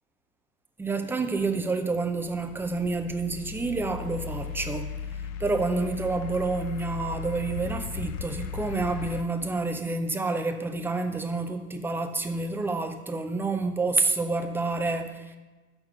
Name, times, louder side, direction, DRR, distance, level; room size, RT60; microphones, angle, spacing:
voice 1, 0.8-4.9 5.4-15.4, right 3 dB, 5° right, 0.4 m, -28 dB
sound 1, 2.0-9.2, left 6 dB, 35° left, 0.6 m, -37 dB
6.8 x 5.7 x 6.7 m
hypercardioid pair, 80°, 47 cm